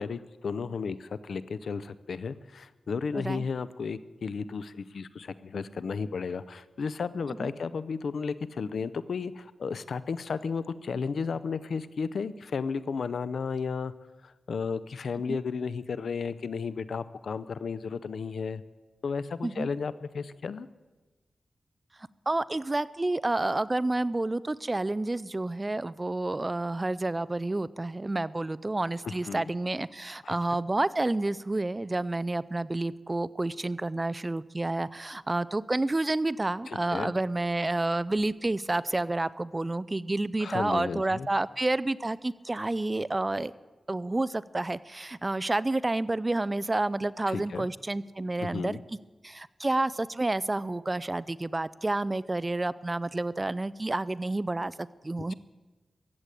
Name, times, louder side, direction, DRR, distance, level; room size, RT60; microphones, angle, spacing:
voice 1, 0.0-13.9 14.2-18.6 19.0-20.7 29.0-29.4 30.2-30.4 36.7-37.1 40.4-41.3 47.3-47.7 48.4-48.8, left 5 dB, 80° left, 16 dB, 0.6 m, -33 dB
voice 2, 3.2-3.5 7.4-7.5 15.3-15.4 19.4-19.7 22.3-43.5 43.9-48.8 49.2-55.3, right 2 dB, 25° right, 18 dB, 0.4 m, -29 dB
15.0 x 8.2 x 9.1 m, 1.2 s
wide cardioid pair, 80°, 0 cm